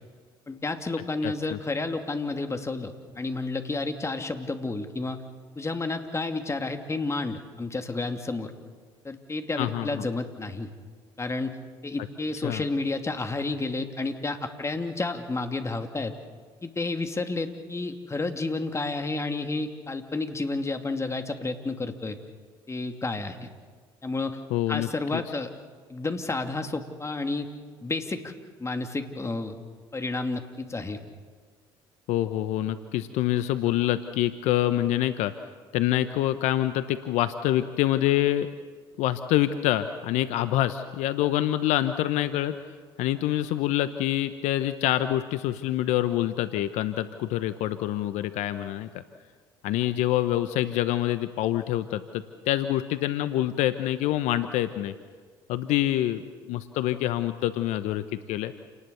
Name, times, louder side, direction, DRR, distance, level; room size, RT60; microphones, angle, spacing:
voice 1, 0.5-5.2 5.6-8.5 9.0-10.7 11.2-11.6 11.8-16.1 16.6-22.2 22.7-23.5 24.0-24.4 24.7-25.5 25.9-27.5 27.8-28.3 28.6-29.6 29.9-31.0, left 3 dB, 20° left, 6 dB, 2.8 m, -31 dB
voice 2, 1.2-1.6 9.6-10.1 12.4-12.6 24.5-24.9 32.1-35.3 35.7-38.5 39.0-42.6 43.0-48.9 49.6-54.9 55.5-56.2 56.5-58.5, left 13 dB, 70° left, 11 dB, 1.0 m, -26 dB
29.0 x 19.5 x 7.1 m, 1.5 s
hypercardioid pair, 65°, 13 cm